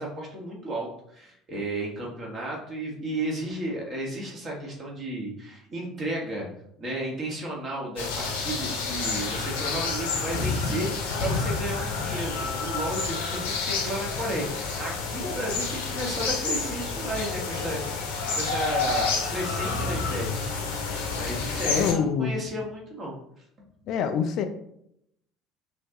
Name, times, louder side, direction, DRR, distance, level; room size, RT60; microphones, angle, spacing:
voice 1, 0.0-6.5 6.8-20.5 21.1-23.2 23.9-24.0, right 1 dB, 35° right, -2 dB, 1.7 m, -33 dB
sound 1, 8.0-21.9, left 4 dB, 70° left, 0.9 m, -29 dB
voice 2, 21.7-22.3 23.9-24.5, left 7 dB, 55° left, 7 dB, 0.4 m, -25 dB
5.5 x 2.7 x 2.9 m, 0.74 s
figure-of-eight pair, 60°, 0 cm